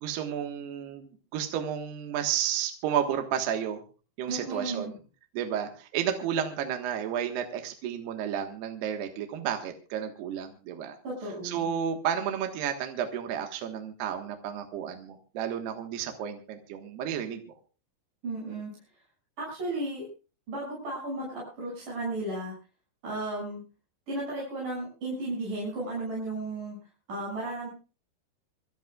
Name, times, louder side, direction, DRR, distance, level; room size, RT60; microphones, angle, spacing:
voice 1, 0.0-3.8 4.2-4.9 5.3-11.0 11.4-17.4, right 9 dB, 65° right, 4 dB, 3.3 m, -32 dB
voice 2, 4.3-5.0 11.0-11.7 18.2-18.7 19.4-20.1 20.5-22.5 23.0-23.6 24.1-26.8 27.1-27.7, right 2 dB, 45° right, -5 dB, 8.1 m, -34 dB
26.5 x 13.5 x 2.4 m, 0.35 s
omnidirectional pair, 5.4 m